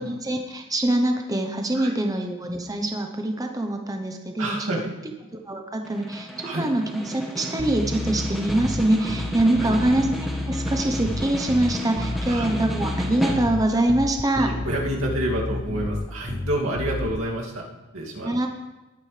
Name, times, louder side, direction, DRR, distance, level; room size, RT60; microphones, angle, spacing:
voice 1, 0.0-4.7 5.3-14.5 18.2-18.5, right 1 dB, 15° right, 4 dB, 0.8 m, -24 dB
voice 2, 4.4-4.8 6.4-6.6 9.6-9.7 12.3-12.5 14.4-17.6 17.9-18.3, right 1 dB, 75° right, -3 dB, 2.4 m, -28 dB
Snare drum, 5.8-13.8, equal, ahead, 1.5 m, -33 dB
Bass guitar, 7.6-17.2, left 2 dB, 20° left, 0.4 m, -31 dB
20.0 x 8.9 x 3.3 m, 1.1 s
head